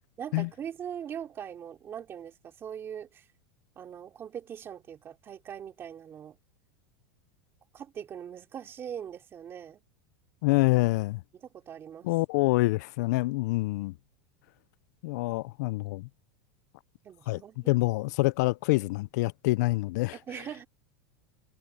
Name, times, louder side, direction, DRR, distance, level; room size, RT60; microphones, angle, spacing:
voice 1, 0.2-3.3 3.8-6.4 7.7-9.8 11.3-12.1 17.0-17.7 20.1-20.7, right 9 dB, 25° right, 3.0 m, -41 dB
voice 2, 10.4-11.2 12.0-13.9 15.0-16.1 17.3-17.4 17.7-20.2, left 21 dB, 60° left, 0.3 m, -26 dB
supercardioid pair, 160°, 10 cm